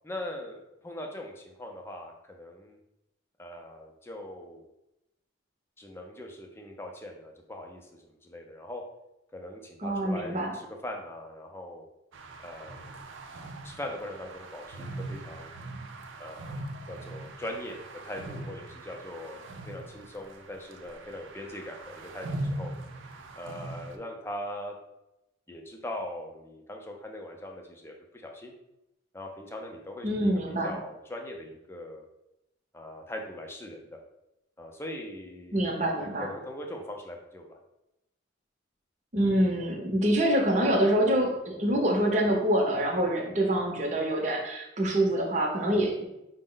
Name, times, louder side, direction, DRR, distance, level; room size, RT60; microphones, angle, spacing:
voice 1, 0.0-2.8 3.4-4.6 5.8-8.8 9.3-11.8 12.4-12.9 13.6-15.5 16.2-16.6 16.9-17.8 18.0-22.7 23.4-24.8 25.5-28.5 29.1-30.3 30.6-32.0 32.7-34.0 34.6-37.6, left 1 dB, 15° left, 2 dB, 0.5 m, -41 dB
voice 2, 9.8-10.5 30.0-30.7 35.5-36.3 39.1-46.0, right 1 dB, 40° right, 0 dB, 0.7 m, -26 dB
sound 1, 12.1-24.0, right 1 dB, 90° right, 0.5 m, -41 dB
5.1 x 2.1 x 3.8 m, 0.89 s
head